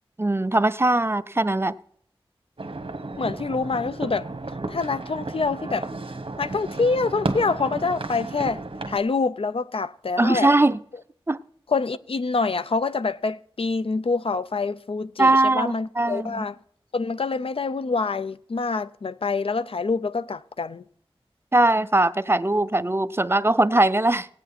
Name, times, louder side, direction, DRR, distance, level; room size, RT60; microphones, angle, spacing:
voice 1, 0.2-1.7 10.2-10.8 11.3-11.4 15.2-16.3 21.5-24.3, right 2 dB, 25° right, 0.5 m, -20 dB
sound 1, 2.6-9.0, right 2 dB, 65° right, 1.3 m, -33 dB
voice 2, 3.2-4.3 4.7-5.9 6.4-8.6 8.9-10.5 11.7-16.6 16.9-20.8, left 4 dB, 70° left, 0.5 m, -26 dB
18.0 x 9.0 x 4.2 m
wide cardioid pair, 65°, 10 cm